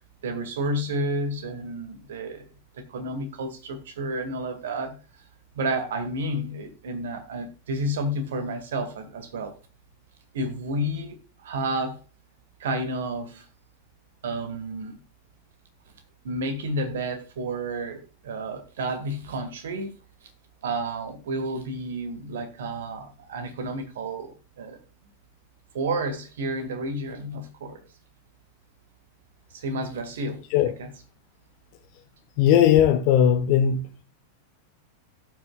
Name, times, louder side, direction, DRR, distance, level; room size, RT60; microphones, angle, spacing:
voice 1, 0.2-2.5 2.7-5.0 5.5-9.5 10.3-12.0 12.6-13.5 14.2-14.9 16.2-19.9 20.6-24.8 25.7-27.8 29.5-30.9, right 1 dB, 60° right, 1.8 m, -31 dB
voice 2, 32.4-33.8, left 9 dB, 45° left, 1.0 m, -18 dB
17.5 x 6.1 x 2.3 m
figure-of-eight pair, 90°, 0 cm